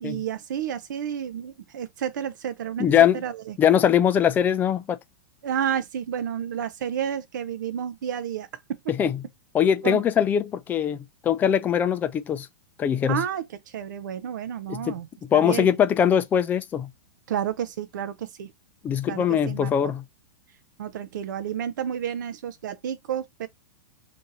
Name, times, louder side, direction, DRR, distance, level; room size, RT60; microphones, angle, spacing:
voice 1, 0.0-3.6 5.4-8.5 9.8-10.0 13.1-15.1 15.3-15.7 17.3-18.5 19.1-19.9 20.8-23.5, right 9 dB, 80° right, 0.5 m, -31 dB
voice 2, 2.8-3.2 3.6-5.0 8.9-9.2 9.5-12.5 12.8-13.2 14.7-15.0 15.3-16.9 18.8-20.0, left 9 dB, 15° left, 0.4 m, -22 dB
2.7 x 2.6 x 3.8 m
hypercardioid pair, 145°, 10 cm